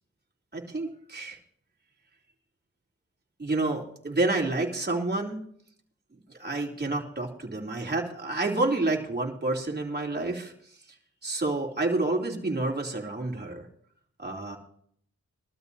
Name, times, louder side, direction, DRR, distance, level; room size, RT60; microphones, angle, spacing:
voice 1, 0.5-1.4 3.4-5.4 6.1-10.8 11.2-13.7 14.2-14.6, right 2 dB, 35° right, 0 dB, 3.1 m, -29 dB
22.0 x 12.5 x 2.8 m, 0.64 s
cardioid pair, 55°, 30 cm